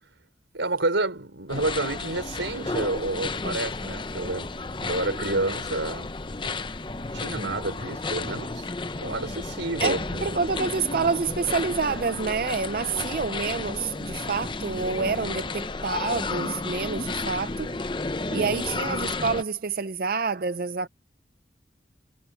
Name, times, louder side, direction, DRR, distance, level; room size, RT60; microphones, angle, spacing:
voice 1, 0.5-4.5 4.8-6.1 6.4-6.6 7.1-8.7 9.0-10.3 12.9-13.2 18.3-18.5, right 2 dB, 90° right, 5.1 m, -29 dB
sound 1, 1.5-19.4, left 3 dB, 25° left, 0.7 m, -32 dB
voice 2, 9.8-17.7 18.3-20.9, right 4 dB, 50° right, 0.5 m, -28 dB
head